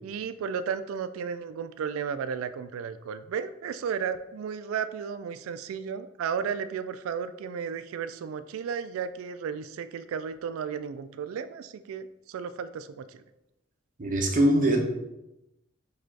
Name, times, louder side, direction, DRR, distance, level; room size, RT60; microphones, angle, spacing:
voice 1, 0.0-13.2, right 7 dB, 85° right, 12 dB, 0.3 m, -34 dB
voice 2, 14.0-14.8, right 1 dB, 40° right, 1 dB, 0.7 m, -22 dB
4.8 x 2.4 x 4.5 m, 0.94 s
head